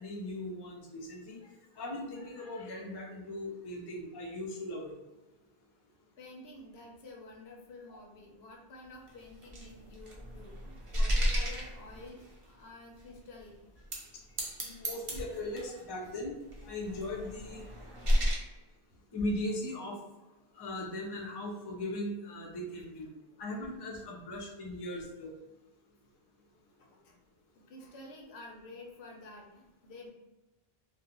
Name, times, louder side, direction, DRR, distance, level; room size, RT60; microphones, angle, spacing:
voice 1, 0.0-1.4 1.8-4.9 14.6-16.3 16.6-17.6 19.1-20.0 20.5-23.1 23.4-25.3, left 1 dB, 40° left, -1 dB, 0.4 m, -38 dB
voice 2, 6.2-13.6 26.8-27.2 27.7-30.1, left 2 dB, 90° left, -1 dB, 0.9 m, -50 dB
sound 1, 9.1-12.4 13.0-13.1 13.8-14.1 14.4-15.8 16.5-18.3, equal, 40° right, 0.5 m, -33 dB
2.4 x 2.1 x 2.9 m, 1.0 s
omnidirectional pair, 1.0 m